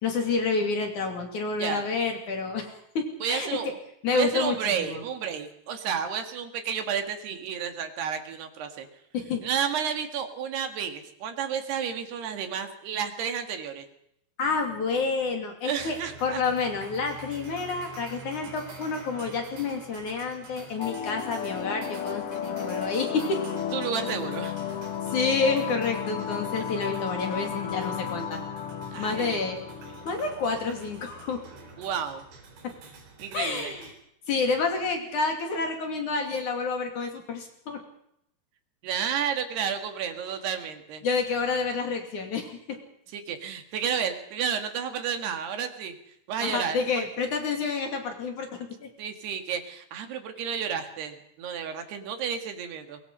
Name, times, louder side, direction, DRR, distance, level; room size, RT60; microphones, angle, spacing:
voice 1, 0.0-3.5 4.0-5.0 9.1-9.4 14.4-23.4 25.1-28.4 28.9-29.6 30.1-31.4 32.6-32.7 33.3-33.9 34.3-37.8 41.0-42.8 46.4-48.9, left 4 dB, 50° left, 4 dB, 3.8 m, -29 dB
voice 2, 3.2-3.7 4.1-8.9 9.4-13.9 15.6-16.4 23.7-24.6 27.4-27.5 28.9-29.4 31.8-32.3 33.2-33.7 38.8-41.1 43.1-46.0 46.3-46.8 49.0-53.0, right 7 dB, 70° right, 6 dB, 4.0 m, -31 dB
sound 1, 15.8-33.9, right 4 dB, 90° right, 6.4 m, -47 dB
sound 2, 20.8-31.8, left 8 dB, 85° left, 1.2 m, -34 dB
23.0 x 22.5 x 5.6 m, 0.74 s
omnidirectional pair, 4.9 m